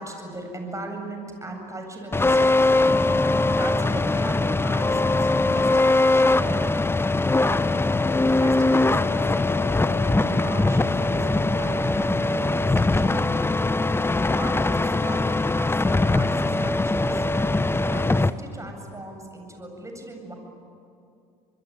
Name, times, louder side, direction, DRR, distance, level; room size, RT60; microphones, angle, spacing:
voice 1, 0.0-2.7 3.2-6.7 7.3-7.7 8.2-13.5 14.3-17.2 17.9-20.3, right 2 dB, 15° right, 3 dB, 7.9 m, -39 dB
sound 1, 2.1-18.3, left 2 dB, 10° left, 0.9 m, -21 dB
26.5 x 21.5 x 10.0 m, 2.5 s
hypercardioid pair, 65°, 20 cm